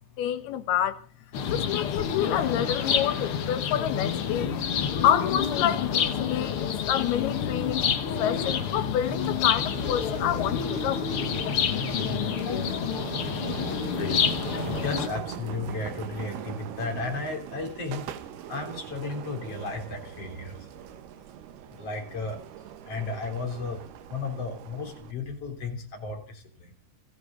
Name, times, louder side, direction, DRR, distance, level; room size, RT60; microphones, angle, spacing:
voice 1, 0.2-1.0 1.5-4.6 5.0-7.9 8.2-11.1, left 10 dB, 85° left, 3.2 m, -28 dB
sound 1, 1.3-15.1, left 7 dB, 70° left, 1.3 m, -28 dB
sound 2, 9.1-25.1, right 10 dB, 85° right, 3.2 m, -40 dB
voice 2, 14.8-18.0 18.5-20.6 21.7-22.4 22.8-23.8 24.1-26.7, left 3 dB, 40° left, 4.1 m, -34 dB
29.0 x 11.5 x 3.9 m
omnidirectional pair, 4.4 m